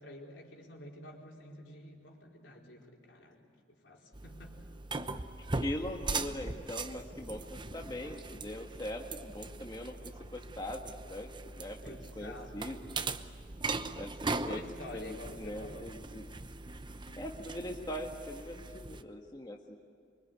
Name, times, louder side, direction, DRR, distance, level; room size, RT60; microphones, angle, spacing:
voice 1, 0.0-4.6 5.0-5.2 11.7-12.8 14.1-15.9, left 1 dB, 70° left, -1 dB, 4.6 m, -50 dB
sound 1, 4.1-19.0, right 3 dB, 25° right, 0.9 m, -40 dB
voice 2, 5.5-11.3 11.5-13.0 14.0-14.1 14.4-16.2 17.2-19.8, left 1 dB, 25° left, 1 dB, 1.6 m, -41 dB
25.5 x 24.0 x 9.6 m, 2.2 s
head